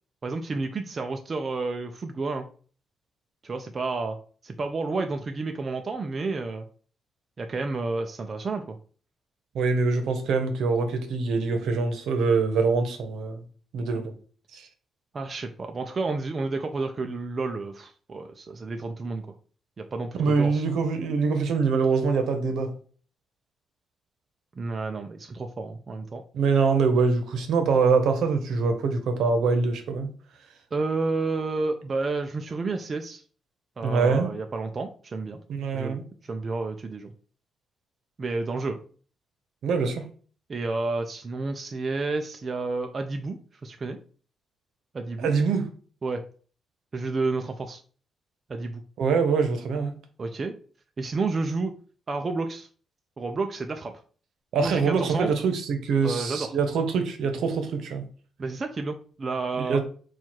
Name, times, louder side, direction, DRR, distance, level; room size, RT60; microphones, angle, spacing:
voice 1, 0.2-2.5 3.4-4.2 4.4-6.7 7.4-8.8 15.1-19.3 19.8-20.6 24.6-26.2 30.7-33.2 33.8-35.4 35.7-37.1 38.2-38.8 40.5-44.0 44.9-45.3 46.0-46.2 46.9-47.8 48.5-48.8 50.2-50.6 51.0-51.7 52.1-52.7 53.2-53.9 54.6-55.3 56.0-56.6 58.4-59.8, right 3 dB, 25° right, 5 dB, 0.3 m, -30 dB
voice 2, 9.5-13.4 13.7-14.1 14.5-14.7 20.1-22.7 26.3-30.1 33.8-34.3 35.5-36.0 39.6-40.0 45.2-45.6 49.0-49.9 54.5-58.0 59.7-59.8, right 4 dB, 70° right, 6 dB, 0.8 m, -24 dB
4.4 x 2.3 x 4.4 m, 0.42 s
wide cardioid pair, 175°, 0 cm